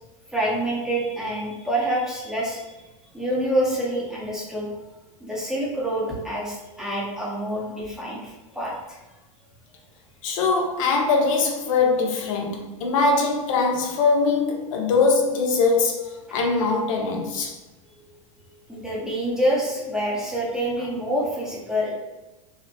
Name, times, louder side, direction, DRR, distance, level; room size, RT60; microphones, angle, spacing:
voice 1, 0.3-2.8 3.1-4.7 5.2-9.0 17.0-17.1 18.0-18.1 18.4-21.9, right 1 dB, 5° right, 0.6 m, -27 dB
voice 2, 10.2-17.6, left 4 dB, 70° left, 0.5 m, -22 dB
2.6 x 2.0 x 2.6 m
supercardioid pair, 120°, 18 cm